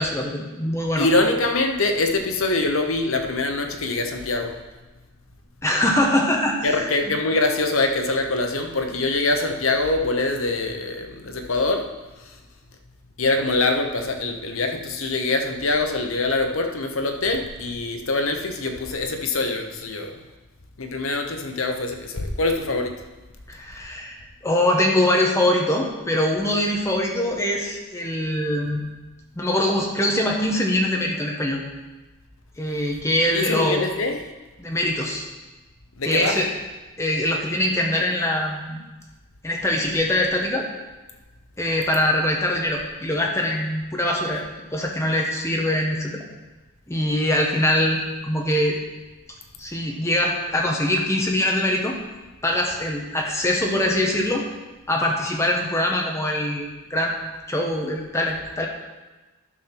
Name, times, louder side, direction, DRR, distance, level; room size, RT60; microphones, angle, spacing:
voice 1, 0.0-1.1 5.6-7.1 23.5-24.2 24.4-28.8 29.3-31.6 32.6-33.9 34.6-35.3 36.0-36.5 37.0-38.8 39.4-40.7 41.6-44.4 44.7-46.2 46.9-48.8 49.6-52.0 52.4-54.5 54.9-57.2 57.5-58.7, left 1 dB, 15° left, 0 dB, 1.2 m, -23 dB
voice 2, 1.0-4.5 6.6-11.9 13.2-20.1 20.8-22.9 33.3-34.2 36.0-36.4, left 2 dB, 70° left, 5 dB, 1.0 m, -24 dB
11.0 x 4.4 x 6.0 m, 1.2 s
head